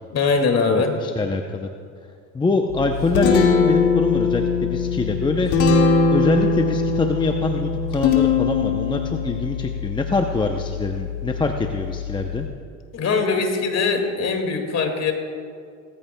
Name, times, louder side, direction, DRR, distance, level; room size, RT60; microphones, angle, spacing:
voice 1, 0.1-1.0 12.9-15.1, left 4 dB, 40° left, 4 dB, 2.0 m, -21 dB
voice 2, 0.7-1.7 2.3-5.5 6.1-12.5, left 3 dB, 10° left, 4 dB, 0.6 m, -24 dB
Guitar, 2.7-12.5, left 4 dB, 80° left, 1.9 m, -21 dB
18.0 x 14.5 x 2.2 m, 2.2 s
supercardioid pair, 100°, 41 cm